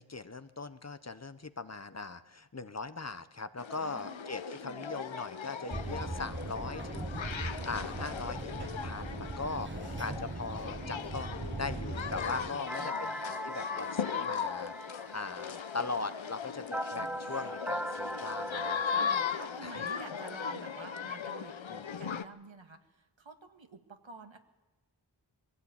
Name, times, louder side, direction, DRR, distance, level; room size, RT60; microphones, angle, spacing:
voice 1, 0.0-19.0 19.6-19.8 21.7-22.2, left 3 dB, 35° left, 13 dB, 0.9 m, -40 dB
sound 1, 3.6-22.2, left 7 dB, 90° left, 0.9 m, -38 dB
voice 2, 3.8-4.9 9.5-10.3 12.5-13.2 16.9-17.2 17.6-17.8 19.0-24.4, right 3 dB, 90° right, 5 dB, 1.9 m, -50 dB
sound 2, 5.7-12.5, right 3 dB, 25° right, 1.0 m, -40 dB
sound 3, 12.7-19.3, equal, 5° right, 0.6 m, -40 dB
22.5 x 16.0 x 8.8 m, 1.1 s
wide cardioid pair, 50°, 45 cm